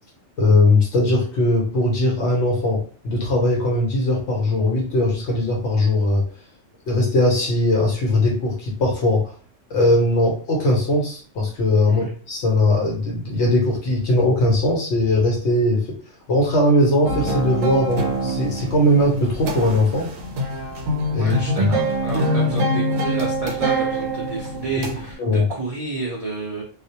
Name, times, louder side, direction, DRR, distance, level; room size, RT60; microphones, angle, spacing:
voice 1, 0.4-6.3 6.9-9.3 9.7-15.9 16.3-20.1 21.1-21.7 25.2-25.4, left 1 dB, 65° left, -1 dB, 0.9 m, -19 dB
sound 1, 17.0-25.1, right 1 dB, 85° right, 1.0 m, -24 dB
voice 2, 21.2-26.6, right 3 dB, 65° right, -3 dB, 0.3 m, -30 dB
2.3 x 2.0 x 2.7 m, 0.40 s
omnidirectional pair, 1.3 m